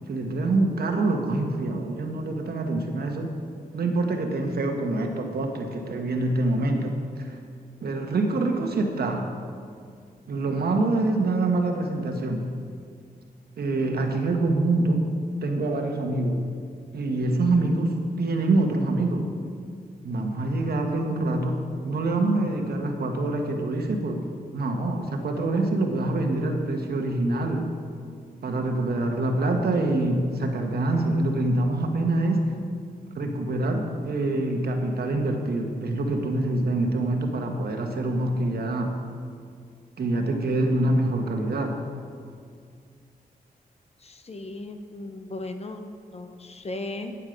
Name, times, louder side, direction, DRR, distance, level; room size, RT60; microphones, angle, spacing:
voice 1, 0.1-3.3 3.7-7.4 7.8-9.3 10.3-12.5 13.6-15.1 15.4-16.4 16.9-19.3 20.0-24.2 24.5-27.7 28.4-32.4 33.1-38.9 40.0-41.8, right 2 dB, 80° right, 3 dB, 1.3 m, -25 dB
voice 2, 44.0-47.1, left 2 dB, 40° left, 7 dB, 0.9 m, -37 dB
11.0 x 8.4 x 5.2 m, 2.2 s
cardioid pair, 80°, 16 cm